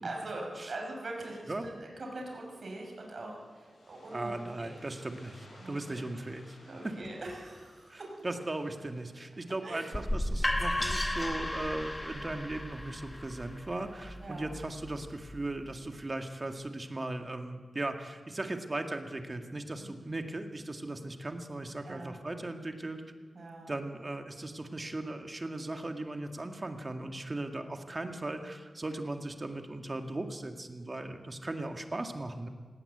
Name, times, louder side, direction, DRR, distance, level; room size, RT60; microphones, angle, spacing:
voice 1, 0.0-4.3 4.6-4.7 5.5-6.0 6.6-8.1 9.6-9.9 14.2-14.5 19.8-20.2 21.8-22.2 23.3-23.7 27.7-28.1, right 2 dB, 60° right, 0 dB, 6.0 m, -42 dB
sound 1, 2.5-12.3, left 2 dB, 80° left, 7.9 m, -61 dB
voice 2, 4.1-6.6 7.9-23.0 23.7-32.5, right 2 dB, 30° right, 5 dB, 2.0 m, -38 dB
sound 2, 9.9-15.7, left 1 dB, 20° left, 1.6 m, -34 dB
18.5 x 18.0 x 8.1 m, 1.5 s
wide cardioid pair, 95°, 0 cm